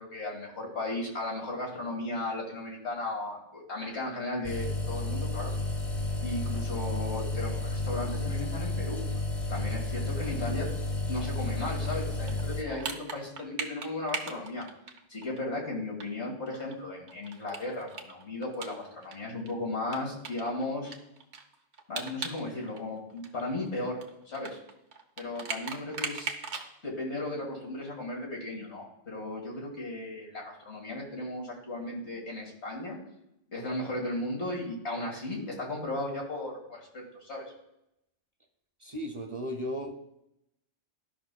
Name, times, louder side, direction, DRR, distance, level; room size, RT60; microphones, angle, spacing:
voice 1, 0.0-5.5 6.2-9.0 9.5-10.7 11.1-14.7 15.1-20.9 21.9-24.0 24.3-24.6 25.2-26.3 26.8-33.0 33.5-37.5, left 2 dB, 75° left, -1 dB, 2.2 m, -35 dB
sound 1, 4.4-12.6, left 2 dB, 35° left, 0.8 m, -32 dB
sound 2, 11.6-15.4 15.7-15.8 16.0-16.1 16.5-19.2 19.5-19.6 19.9-22.4 22.7-26.7, right 5 dB, 75° right, 1.1 m, -39 dB
voice 2, 38.8-39.9, equal, 35° right, 4 dB, 0.6 m, -35 dB
12.5 x 5.6 x 2.2 m, 0.82 s
omnidirectional pair, 1.1 m